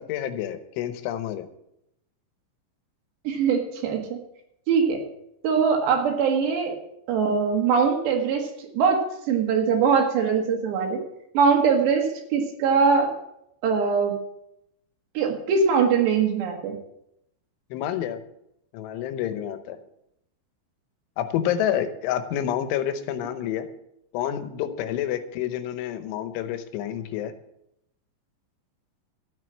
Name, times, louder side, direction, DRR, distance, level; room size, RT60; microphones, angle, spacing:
voice 1, 0.1-1.5 17.7-18.2 18.7-19.8 21.2-23.7 24.1-27.3, left 10 dB, 85° left, 10 dB, 3.3 m, -28 dB
voice 2, 3.3-4.2 4.7-5.0 5.4-6.8 7.1-11.0 11.3-13.1 13.6-14.2 15.2-16.8, right 5 dB, 70° right, 3 dB, 3.6 m, -22 dB
13.0 x 7.8 x 7.4 m, 0.80 s
omnidirectional pair, 5.4 m